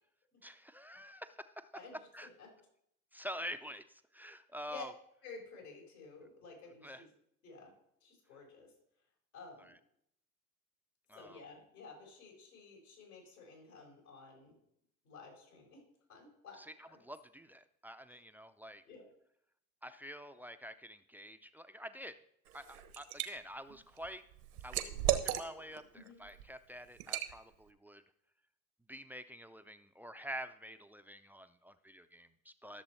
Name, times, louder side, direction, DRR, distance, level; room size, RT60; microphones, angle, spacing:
voice 1, 0.4-1.7 2.1-2.3 3.1-4.9 6.8-7.0 9.6-9.7 11.1-11.4 16.6-18.8 19.8-22.2 22.5-24.2 24.6-28.0 28.9-32.8, equal, 5° right, 10 dB, 0.4 m, -47 dB
voice 2, 5.2-7.1 7.4-7.7 8.0-8.7 9.3-9.7 11.1-14.6 15.0-15.8 16.1-16.6 16.9-17.0 18.1-18.2 18.8-19.0 25.9-26.2, left 4 dB, 90° left, -2 dB, 4.7 m, -52 dB
Liquid, 22.5-23.3 23.7-25.8 26.2-26.4 27.0-27.3, right 13 dB, 80° right, 1.2 m, -35 dB
14.0 x 6.8 x 4.3 m, 0.74 s
hypercardioid pair, 85°, 43 cm